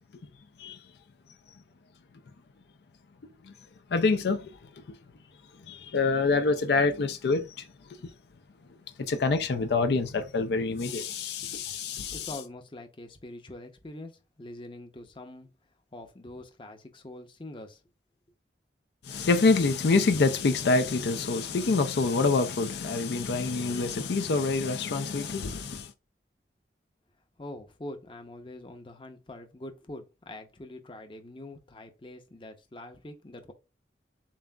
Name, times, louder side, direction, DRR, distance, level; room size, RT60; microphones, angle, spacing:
voice 1, 3.9-4.6 4.9-5.0 5.7-7.7 9.0-12.3 19.0-25.9, left 3 dB, 70° left, 0.4 m, -26 dB
voice 2, 12.1-15.5 15.9-17.8 27.4-33.5, left 1 dB, 30° left, 0.7 m, -44 dB
7.2 x 2.5 x 2.2 m
head